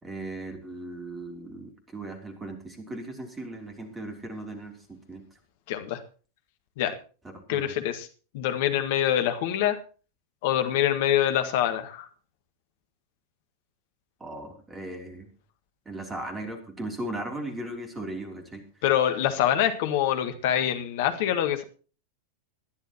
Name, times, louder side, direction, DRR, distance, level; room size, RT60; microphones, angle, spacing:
voice 1, 0.0-5.2 7.2-7.7 14.2-15.3 15.8-18.6, right 1 dB, 15° right, 5 dB, 3.2 m, -37 dB
voice 2, 5.7-6.0 6.8-7.0 7.5-8.1 8.3-9.8 10.4-12.1 18.8-21.6, left 11 dB, 50° left, 8 dB, 1.7 m, -25 dB
20.0 x 11.0 x 3.0 m, 0.37 s
figure-of-eight pair, 90°, 0 cm